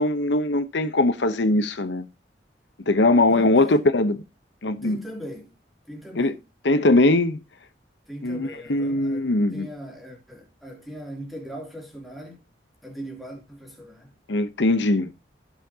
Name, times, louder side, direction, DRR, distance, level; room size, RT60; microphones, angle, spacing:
voice 1, 0.0-2.0 2.9-4.2 4.6-5.0 6.2-6.3 6.6-7.4 8.2-9.7 14.3-15.1, left 2 dB, 85° left, 0.9 m, -21 dB
voice 2, 3.3-3.8 4.8-5.5 5.9-6.4 8.1-12.4 12.8-14.2, equal, ahead, 3.0 m, -39 dB
17.0 x 5.8 x 2.9 m
head